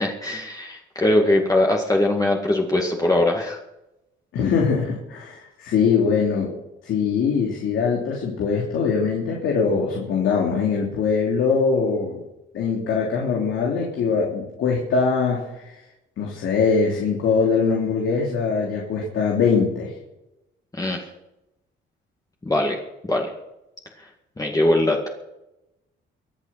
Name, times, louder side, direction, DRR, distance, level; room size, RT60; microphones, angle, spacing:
voice 1, 0.0-3.6 20.7-21.1 22.4-22.8 23.1-23.3 24.4-25.1, left 1 dB, 20° left, 0 dB, 2.1 m, -21 dB
voice 2, 4.3-6.5 6.8-12.2 12.5-15.8 16.2-19.9, left 5 dB, 80° left, -2 dB, 3.3 m, -22 dB
23.5 x 8.3 x 5.8 m, 0.92 s
cardioid pair, 90°, 20 cm